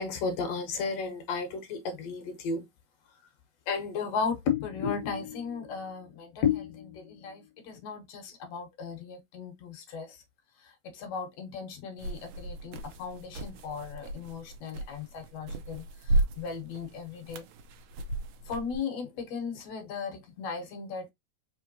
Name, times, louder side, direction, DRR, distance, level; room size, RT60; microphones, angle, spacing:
voice 1, 0.0-2.7 3.7-10.2 10.6-17.5 18.5-21.1, left 6 dB, 65° left, 2.0 m, -35 dB
sound 1, 12.0-18.8, right 2 dB, 75° right, 2.0 m, -34 dB
5.2 x 3.2 x 2.7 m
omnidirectional pair, 3.3 m